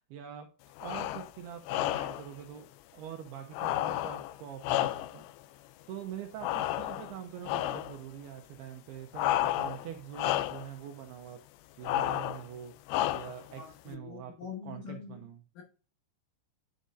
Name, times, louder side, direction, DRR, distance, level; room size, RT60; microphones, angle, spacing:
voice 1, 0.1-0.5 0.8-5.2 5.9-11.4 11.8-14.3 14.6-15.4, right 9 dB, 80° right, 2.4 m, -44 dB
sound 1, 0.8-1.3 1.7-2.3 3.5-5.3 6.4-7.2 7.5-8.0 9.1-9.9 10.1-10.7 11.8-12.5 12.9-13.5, left 14 dB, 90° left, 3.0 m, -31 dB
voice 2, 13.5-15.3 15.5-15.6, left 7 dB, 65° left, 2.3 m, -44 dB
9.7 x 6.3 x 2.7 m
omnidirectional pair, 5.3 m